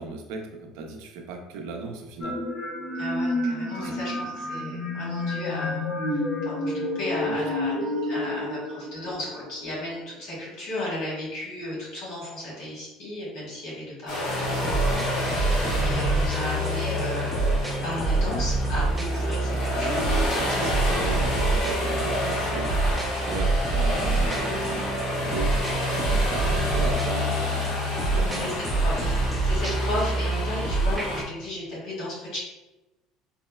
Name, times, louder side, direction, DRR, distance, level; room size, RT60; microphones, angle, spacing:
voice 1, 0.0-2.4 3.7-4.2 7.1-7.5 20.4-22.8 23.3-27.5 28.1-28.7, right 3 dB, 80° right, 3 dB, 0.4 m, -36 dB
sound 1, 2.2-9.9, left 1 dB, 35° left, 0.7 m, -30 dB
voice 2, 2.9-14.3 14.7-17.5 17.8-20.0 20.6-21.1 28.0-29.2 29.4-32.4, left 1 dB, 70° left, -6 dB, 1.5 m, -34 dB
sound 2, 14.1-31.2, left 1 dB, 85° left, 1.1 m, -30 dB
sound 3, 14.3-31.2, right 2 dB, 5° right, 0.4 m, -26 dB
4.0 x 2.0 x 2.2 m, 1.0 s
cardioid pair, 160°, 0 cm